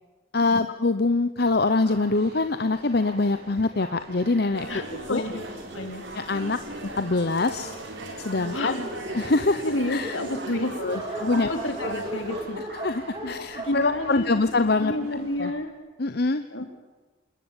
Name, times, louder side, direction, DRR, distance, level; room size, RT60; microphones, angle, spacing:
voice 1, 0.3-4.7 5.1-5.2 6.1-6.6 7.0-7.7 8.2-8.7 9.1-10.2 10.8-11.5 11.8-11.9 12.8-14.9 15.4-15.5 16.0-16.6, left 3 dB, 55° left, 10 dB, 0.9 m, -24 dB
sound 1, 1.4-15.5, right 2 dB, 55° right, 3.4 m, -45 dB
Dog, 4.1-7.1 7.8-7.9 8.2-8.3 8.5-14.9, right 1 dB, 25° right, 4.8 m, -38 dB
sound 2, 4.6-12.4, right 2 dB, 75° right, 4.6 m, -38 dB
voice 2, 4.7-5.5 5.7-6.0 8.1-8.9 9.6-10.8 11.1-12.6 13.2-14.3 14.8-15.7 16.5-16.7, left 1 dB, 75° left, 6 dB, 3.5 m, -30 dB
26.5 x 21.0 x 9.0 m, 1.2 s
head